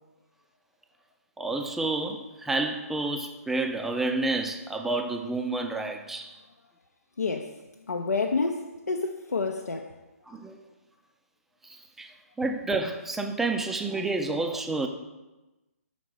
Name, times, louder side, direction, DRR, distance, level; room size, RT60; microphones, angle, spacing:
voice 1, 1.4-6.3 10.3-10.6 12.0-12.1 12.4-14.9, right 3 dB, 5° right, 0.3 m, -29 dB
voice 2, 7.2-7.5 7.9-9.9, left 4 dB, 80° left, 0.6 m, -29 dB
6.1 x 4.0 x 6.3 m
figure-of-eight pair, 140°, 9 cm